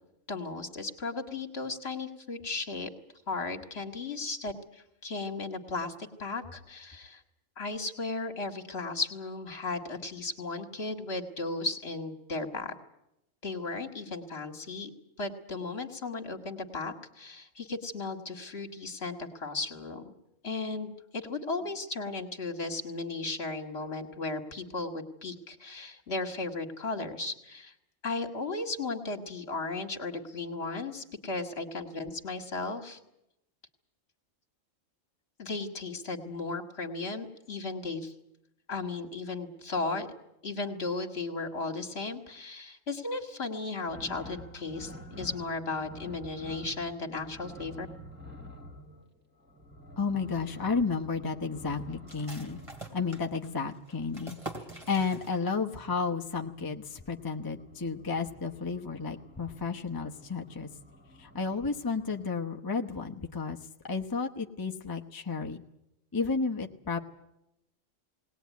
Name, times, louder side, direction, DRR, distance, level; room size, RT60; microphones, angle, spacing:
voice 1, 0.3-2.9 3.3-7.2 7.6-12.7 13.4-14.9 15.2-20.0 20.4-27.7 28.0-33.0 35.4-38.1 38.7-40.1 40.4-47.9, left 3 dB, 55° left, 5 dB, 2.3 m, -35 dB
sound 1, 43.9-53.8 55.4-62.3, equal, 10° right, 2.6 m, -49 dB
voice 2, 50.0-52.6 52.9-60.7 61.2-63.6 63.8-65.6 66.1-67.0, left 4 dB, 20° left, 2 dB, 0.9 m, -32 dB
sound 2, 52.1-55.7 56.0-56.1 56.5-57.0, right 1 dB, 25° right, 2.9 m, -45 dB
20.0 x 19.0 x 9.4 m, 0.86 s
omnidirectional pair, 1.3 m